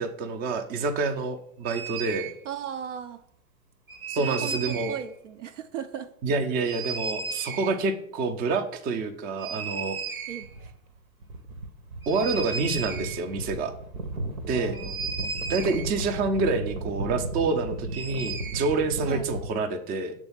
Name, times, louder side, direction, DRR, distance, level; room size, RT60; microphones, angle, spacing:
voice 1, 0.0-2.3 4.1-4.9 6.2-10.0 12.1-13.7 14.5-14.8 15.5-20.1, right 3 dB, 20° right, 7 dB, 0.6 m, -27 dB
sound 1, 1.6-2.3 3.9-5.0 6.6-7.8 9.4-10.7 10.9-11.0 11.2-19.5, right 3 dB, 75° right, 1.1 m, -34 dB
voice 2, 2.4-3.2 4.2-6.1 10.3-10.7 14.5-15.6 19.1-19.2, right 9 dB, 60° right, 10 dB, 0.6 m, -37 dB
6.9 x 3.6 x 5.6 m, 0.67 s
figure-of-eight pair, 95°, 43 cm